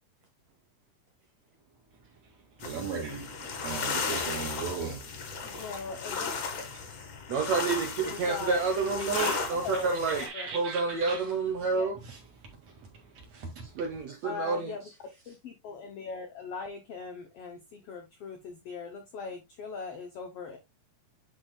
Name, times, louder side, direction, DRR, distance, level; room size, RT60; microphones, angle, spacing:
sound 1, 2.6-10.3, left 5 dB, 65° left, 1.2 m, -35 dB
voice 1, 2.6-3.3 3.6-5.6 9.1-9.5 10.2-11.2 12.0-13.0 13.3-13.8, right 5 dB, 50° right, 2.9 m, -38 dB
voice 2, 5.4-6.3 8.0-8.6 8.9-9.2 9.5-10.5 11.7-11.9 14.2-14.8 15.3-20.6, left 5 dB, 90° left, 1.3 m, -40 dB
voice 3, 7.3-10.2 10.5-12.0 13.7-14.7, right 4 dB, 70° right, 1.7 m, -29 dB
10.0 x 4.5 x 2.2 m
omnidirectional pair, 4.0 m